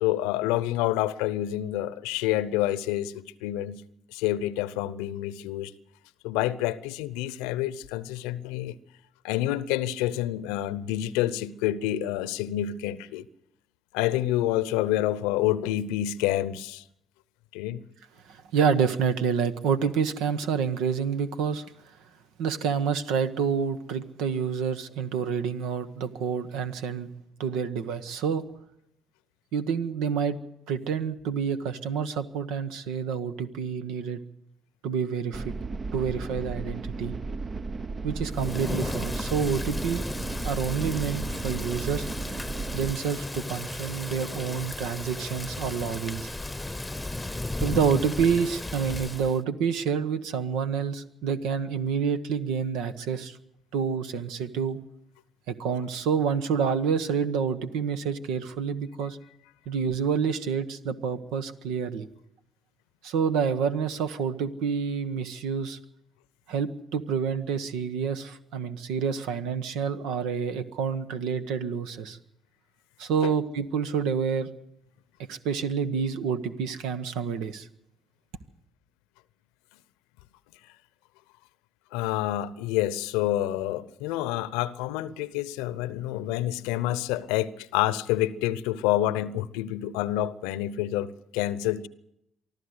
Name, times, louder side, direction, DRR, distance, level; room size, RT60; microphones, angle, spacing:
voice 1, 0.0-3.8 4.1-5.7 6.2-8.8 9.2-13.2 13.9-16.8 17.5-17.9 73.2-73.3 81.9-91.9, left 14 dB, 80° left, 0.7 m, -28 dB
voice 2, 18.2-21.7 22.4-27.1 27.4-28.4 29.5-30.4 30.7-34.2 34.8-35.5 35.9-37.2 38.0-40.0 40.4-42.1 42.7-46.3 47.6-53.4 53.7-54.8 55.5-59.2 59.7-62.1 63.0-65.8 66.5-72.2 73.0-74.5 75.3-77.7, right 6 dB, 75° right, 1.2 m, -28 dB
sound 1, 35.3-42.9, right 3 dB, 40° right, 0.9 m, -34 dB
Thunder / Rain, 38.3-49.4, left 2 dB, 10° left, 1.0 m, -35 dB
24.5 x 14.0 x 8.0 m
hypercardioid pair, 50°, 0 cm